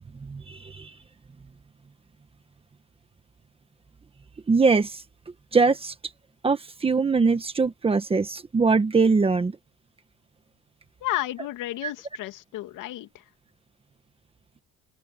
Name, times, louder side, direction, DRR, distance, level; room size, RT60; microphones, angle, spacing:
voice 1, 0.2-0.9 4.5-5.0 5.5-5.9 6.4-9.6 11.8-11.9, right 4 dB, 15° right, 1.4 m, -22 dB
voice 2, 11.0-13.2, left 15 dB, 70° left, 2.6 m, -32 dB
open air
cardioid pair, 160°, 33 cm